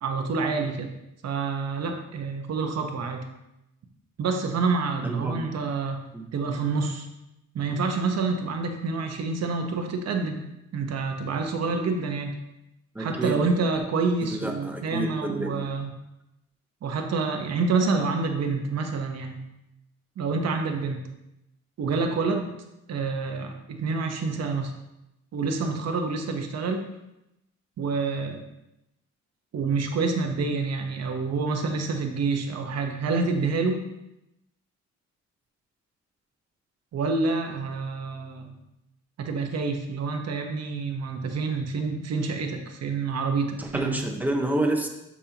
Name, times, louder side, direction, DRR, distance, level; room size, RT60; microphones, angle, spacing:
voice 1, 0.0-0.9 1.2-3.3 4.2-6.0 6.3-7.1 7.5-10.5 10.7-12.3 13.0-15.9 16.8-19.4 20.2-21.1 21.8-22.6 22.9-24.7 25.3-26.8 27.8-28.4 29.5-33.8 36.9-38.5 39.2-44.0, right 4 dB, 60° right, 4 dB, 1.2 m, -27 dB
voice 2, 5.0-5.4 6.1-6.2 12.9-13.4 14.3-15.7 43.6-44.9, right 2 dB, 5° right, 2 dB, 1.0 m, -28 dB
12.5 x 5.5 x 2.9 m, 0.89 s
cardioid pair, 140°, 29 cm